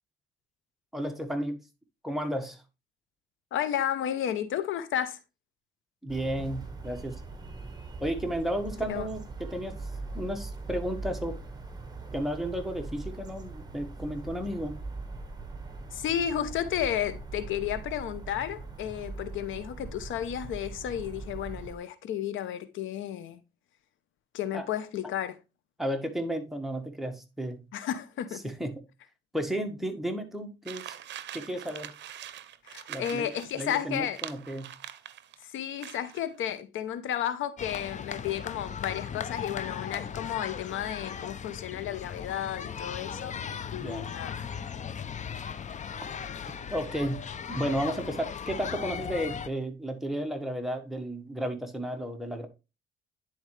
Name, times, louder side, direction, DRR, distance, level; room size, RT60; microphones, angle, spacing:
voice 1, 0.9-1.6 2.0-2.6 6.0-7.2 8.0-9.9 10.1-11.4 12.1-14.8 24.5-24.6 25.8-27.6 28.4-28.8 29.3-31.0 31.3-31.9 32.9-34.7 43.8-44.1 46.7-52.5, equal, ahead, 1.4 m, -33 dB
voice 2, 3.5-5.2 8.9-9.1 15.9-23.4 24.3-25.4 27.7-28.4 32.6-34.2 35.4-43.4 43.7-44.4, left 10 dB, 80° left, 0.8 m, -32 dB
sound 1, 6.1-21.8, right 3 dB, 20° right, 1.5 m, -41 dB
sound 2, 30.7-35.4 35.8-36.3, right 11 dB, 65° right, 0.6 m, -43 dB
sound 3, 37.6-49.5, left 7 dB, 35° left, 0.6 m, -37 dB
10.0 x 4.3 x 3.2 m
cardioid pair, 90°, 20 cm